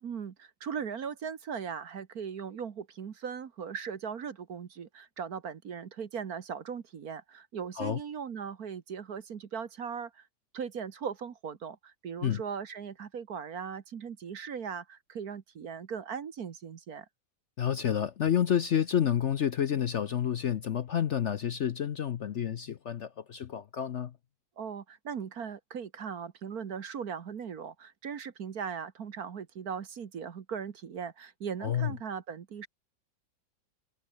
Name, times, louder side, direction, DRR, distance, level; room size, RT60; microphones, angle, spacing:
voice 1, 0.0-10.3 10.5-17.1 24.6-32.7, right 7 dB, 55° right, 1.7 m, -39 dB
voice 2, 17.6-24.1 31.6-31.9, left 9 dB, 60° left, 0.7 m, -29 dB
omnidirectional pair, 2.0 m